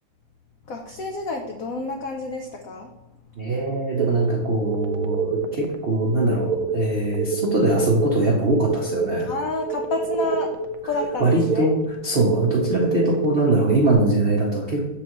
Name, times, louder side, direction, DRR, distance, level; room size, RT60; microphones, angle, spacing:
voice 1, 0.7-2.9 9.2-10.5 10.8-11.7, left 2 dB, 80° left, 2 dB, 0.7 m, -29 dB
voice 2, 3.4-9.3 11.2-14.9, right 2 dB, 60° right, -3 dB, 0.6 m, -22 dB
sound 1, 4.0-13.9, right 4 dB, 85° right, 1.4 m, -28 dB
7.4 x 4.4 x 3.0 m, 0.93 s
omnidirectional pair, 2.3 m